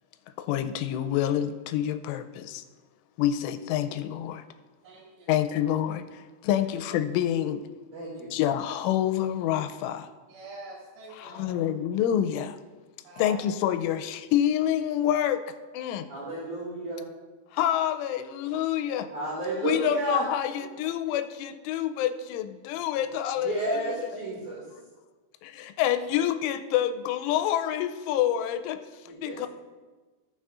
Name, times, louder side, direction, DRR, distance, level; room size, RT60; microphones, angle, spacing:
voice 1, 0.4-2.6 3.2-4.4 5.3-7.6 8.3-10.1 11.1-12.6 13.2-15.4 15.7-16.1 17.5-19.1 19.6-24.1 25.4-28.8 29.2-29.5, left 11 dB, 90° left, 9 dB, 3.1 m, -27 dB
voice 2, 4.8-5.3 10.3-11.6 13.0-13.4 20.1-20.2 20.5-20.6, right 3 dB, 75° right, -5 dB, 4.1 m, -45 dB
voice 3, 7.9-8.3 16.1-17.0 19.1-20.2 23.4-24.6 29.1-29.4, right 2 dB, 50° right, -7 dB, 2.7 m, -31 dB
18.0 x 6.0 x 2.4 m, 1.3 s
omnidirectional pair, 5.5 m